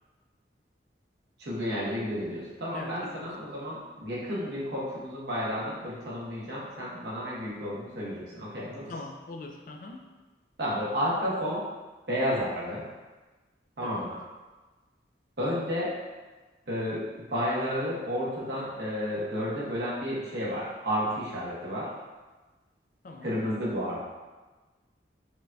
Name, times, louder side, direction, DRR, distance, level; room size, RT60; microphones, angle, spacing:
voice 1, 1.4-8.9 10.6-11.6 12.1-12.8 13.8-14.2 15.4-15.9 16.7-21.9 23.2-24.0, equal, 70° right, -6 dB, 1.1 m, -31 dB
voice 2, 2.7-3.3 8.9-10.1 13.8-14.1 23.0-23.4, left 2 dB, 45° left, 2 dB, 0.4 m, -42 dB
5.0 x 2.6 x 2.3 m, 1.2 s
head